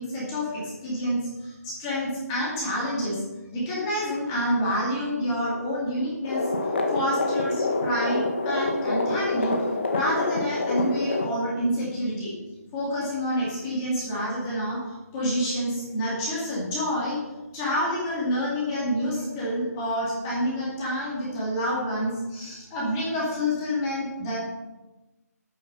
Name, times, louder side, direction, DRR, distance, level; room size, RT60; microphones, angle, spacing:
voice 1, 0.0-3.2 3.5-6.5 6.9-9.6 9.9-12.3 12.7-17.2 17.5-24.4, equal, 10° left, -6 dB, 2.4 m, -28 dB
sound 1, 6.2-11.3, left 2 dB, 40° left, 1.8 m, -26 dB
10.0 x 9.2 x 5.8 m, 1.1 s
hypercardioid pair, 180°, 9 cm